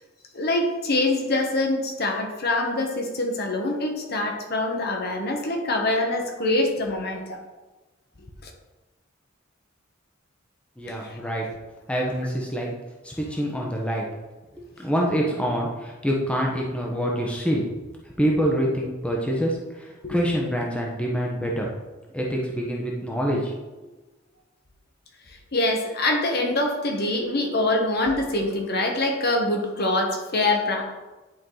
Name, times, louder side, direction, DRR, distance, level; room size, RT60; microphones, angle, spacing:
voice 1, 0.3-7.4 8.4-8.5 10.9-11.3 20.0-20.2 25.3-30.9, left 2 dB, 50° left, 2 dB, 1.2 m, -25 dB
voice 2, 10.8-11.5 11.9-12.7 13.0-14.0 14.6-17.6 18.2-21.7 22.1-23.5, equal, 5° left, -2 dB, 1.0 m, -26 dB
10.5 x 4.8 x 3.9 m, 1.2 s
head